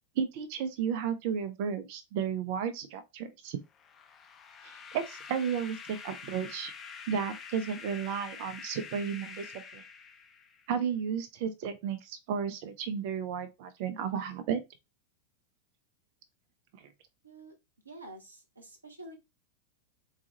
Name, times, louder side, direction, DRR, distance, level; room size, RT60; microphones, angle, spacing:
voice 1, 0.2-3.6 4.6-6.7 7.1-9.8 10.7-14.6, right 7 dB, 45° right, 0.6 m, -33 dB
sound 1, 3.7-10.7, left 5 dB, 25° left, 0.4 m, -46 dB
voice 2, 17.2-17.5 17.8-19.2, right 2 dB, 80° right, 1.0 m, -48 dB
4.0 x 2.4 x 2.8 m
figure-of-eight pair, 90°, 0 cm